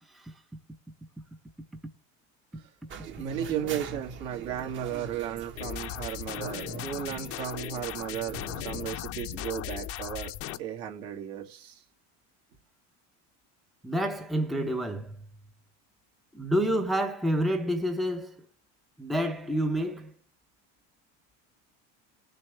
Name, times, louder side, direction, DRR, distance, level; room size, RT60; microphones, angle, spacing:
sound 1, 2.9-8.7, right 5 dB, 35° right, 1.2 m, -43 dB
voice 1, 3.1-10.3 10.6-11.8, right 10 dB, 65° right, 2.6 m, -35 dB
sound 2, 5.6-10.6, left 13 dB, 40° left, 0.7 m, -37 dB
voice 2, 13.8-15.1 16.3-18.3 19.0-20.1, equal, ahead, 0.6 m, -28 dB
19.0 x 6.7 x 3.4 m
cardioid pair, 155°, 34 cm